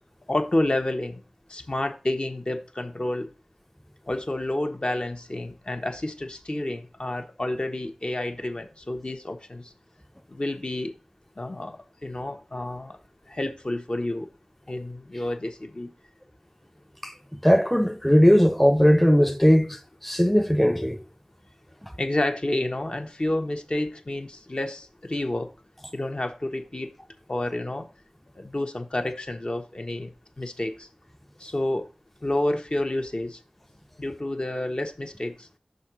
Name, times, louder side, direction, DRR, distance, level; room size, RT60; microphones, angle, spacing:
voice 1, 0.3-1.2 1.5-3.3 4.1-9.6 10.3-10.9 11.4-11.8 12.0-13.0 13.3-14.3 14.7-15.9 22.0-25.5 25.9-26.9 27.3-27.8 28.4-30.1 30.4-30.9 31.4-31.9 32.2-33.4 34.0-35.5, left 1 dB, 50° left, 1.2 m, -29 dB
voice 2, 17.4-21.0, equal, 5° left, 0.6 m, -19 dB
6.3 x 4.1 x 6.0 m
wide cardioid pair, 45°, 2 cm